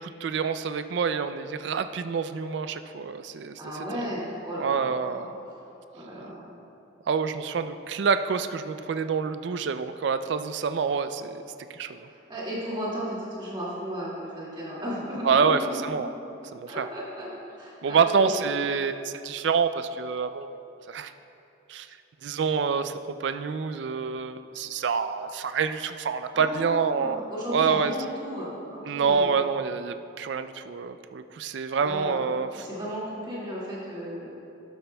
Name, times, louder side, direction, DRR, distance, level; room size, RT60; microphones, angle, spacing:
voice 1, 0.0-3.6 3.9-4.1 4.6-5.2 7.1-11.4 11.7-12.1 15.2-16.1 16.5-16.9 17.8-20.6 20.9-21.1 21.7-21.9 22.2-27.9 28.8-32.7, right 5 dB, 65° right, 10 dB, 0.3 m, -27 dB
voice 2, 3.6-5.3 5.9-6.5 12.1-16.1 16.7-17.3 17.5-18.4 26.3-29.3 31.8-34.3, equal, 25° right, -7 dB, 2.2 m, -35 dB
12.5 x 11.5 x 2.3 m, 2.7 s
head